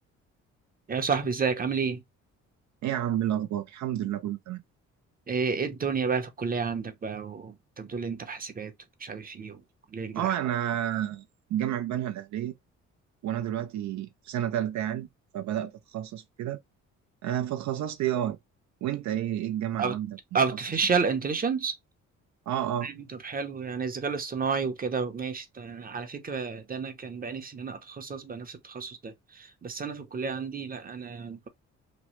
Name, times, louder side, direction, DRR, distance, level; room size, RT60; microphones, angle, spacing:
voice 1, 0.9-2.0 5.3-8.7 9.0-9.6 9.9-10.3 19.8-20.0 20.3-21.8 22.8-31.5, right 5 dB, 30° right, 0.7 m, -31 dB
voice 2, 2.8-4.6 10.1-11.2 11.5-12.5 13.2-15.1 15.3-16.6 17.2-18.4 18.8-20.2 22.5-22.9, right 11 dB, 70° right, 0.5 m, -30 dB
3.0 x 2.0 x 3.0 m
cardioid pair, 90°, 30 cm